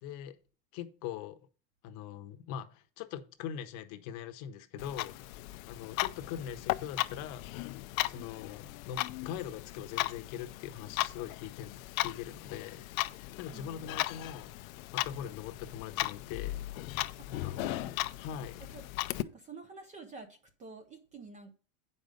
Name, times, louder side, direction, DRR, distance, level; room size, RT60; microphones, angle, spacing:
voice 1, 0.0-0.4 0.7-1.4 1.8-7.5 8.0-12.9 13.4-16.6 17.3-17.5 18.2-18.6, left 9 dB, 45° left, 0.9 m, -42 dB
Clock, 4.8-19.2, left 17 dB, 70° left, 0.6 m, -37 dB
voice 2, 13.5-14.2 17.2-18.1 18.6-18.9 19.2-21.5, right 4 dB, 20° right, 0.5 m, -50 dB
8.5 x 5.4 x 5.0 m
supercardioid pair, 155°, 42 cm